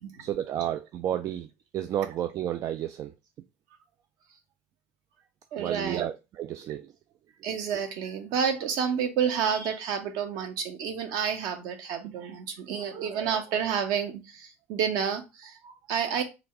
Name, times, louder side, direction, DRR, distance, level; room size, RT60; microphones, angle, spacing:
voice 1, 0.2-1.5 1.7-3.1 5.6-6.9, right 11 dB, 45° right, 0.3 m, -31 dB
voice 2, 5.5-6.1 7.4-16.2, right 7 dB, 60° right, 0.9 m, -30 dB
3.8 x 2.3 x 3.6 m
hypercardioid pair, 70°, 7 cm